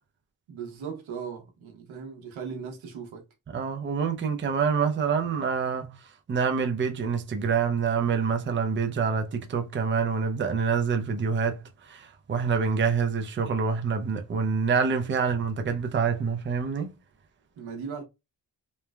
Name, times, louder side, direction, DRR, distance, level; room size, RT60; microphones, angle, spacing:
voice 1, 0.5-3.2 17.6-18.0, right 6 dB, 90° right, 0.9 m, -38 dB
voice 2, 3.5-16.9, right 5 dB, 25° right, 0.5 m, -26 dB
3.1 x 2.1 x 2.2 m
cardioid pair, 70°, 46 cm